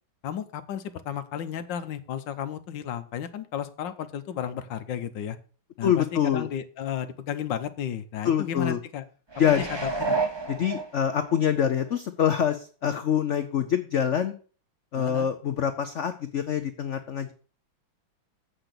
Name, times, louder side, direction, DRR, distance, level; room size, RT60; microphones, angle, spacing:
voice 1, 0.2-5.4 5.8-9.0 9.5-10.2 15.0-15.3, left 9 dB, 70° left, 11 dB, 1.5 m, -33 dB
voice 2, 5.8-6.5 8.2-8.8 9.4-9.6 10.5-14.3 14.9-17.3, left 9 dB, 90° left, 9 dB, 0.6 m, -25 dB
sound 1, 9.3-11.4 11.9-12.0, right 3 dB, 20° right, 0.7 m, -30 dB
8.1 x 5.9 x 6.6 m, 0.39 s
omnidirectional pair, 2.1 m